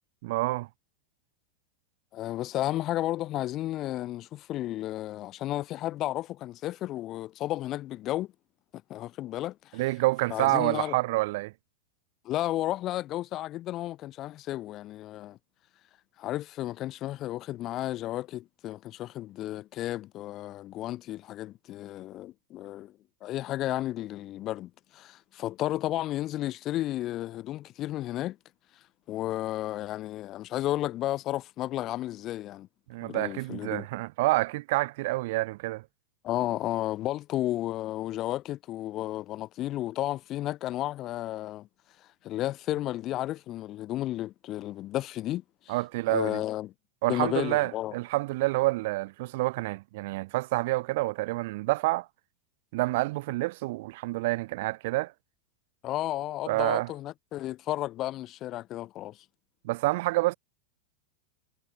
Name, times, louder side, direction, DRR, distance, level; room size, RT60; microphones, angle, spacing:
voice 1, 0.2-0.7 9.7-11.5 32.9-35.8 45.7-46.4 47.0-52.1 52.7-55.1 56.5-56.9 59.6-60.3, right 20 dB, 50° right, 0.7 m, -28 dB
voice 2, 2.1-8.3 8.9-9.8 10.3-11.0 12.2-15.4 16.2-22.9 23.2-28.4 29.1-32.7 33.0-33.9 36.2-41.7 42.2-45.7 46.1-46.7 47.1-48.0 55.8-59.2, left 14 dB, 35° left, 1.9 m, -33 dB
figure-of-eight pair, 90°, 0 cm